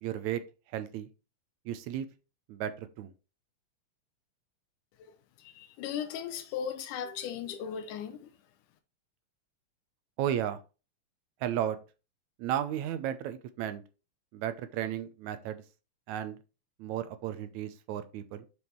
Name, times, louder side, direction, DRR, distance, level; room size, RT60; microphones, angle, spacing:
voice 1, 0.0-0.4 0.7-1.1 1.7-2.1 2.5-3.1 10.2-10.6 11.4-11.8 12.4-13.8 14.3-15.6 16.1-16.4 16.8-18.5, right 11 dB, 75° right, 2.0 m, -34 dB
voice 2, 5.4-8.3, left 8 dB, 85° left, 2.2 m, -37 dB
7.1 x 4.9 x 4.5 m
omnidirectional pair, 3.6 m